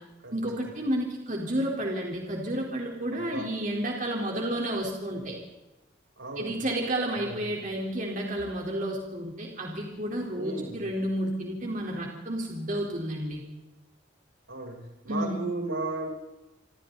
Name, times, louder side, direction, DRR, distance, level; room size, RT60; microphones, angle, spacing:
voice 1, 0.3-5.4 6.4-13.4 15.1-15.5, right 1 dB, 40° right, -1 dB, 4.1 m, -31 dB
voice 2, 3.1-3.5 5.1-5.2 6.2-6.6 7.1-7.4 10.3-10.8 14.5-16.1, right 2 dB, 85° right, 0 dB, 7.8 m, -35 dB
27.5 x 26.5 x 4.1 m, 1.0 s
head